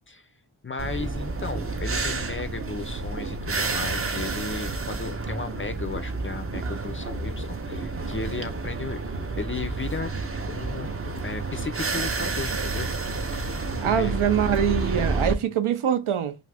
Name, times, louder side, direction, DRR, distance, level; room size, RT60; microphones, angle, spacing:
voice 1, 0.6-9.0 9.4-10.1 10.5-12.9 13.3-14.2 14.5-14.6, left 4 dB, 25° left, 0.4 m, -35 dB
sound 1, 0.8-15.3, right 3 dB, 30° right, 0.5 m, -30 dB
voice 2, 13.8-16.4, right 9 dB, 75° right, 0.6 m, -24 dB
2.6 x 2.4 x 3.3 m
wide cardioid pair, 50°, 50 cm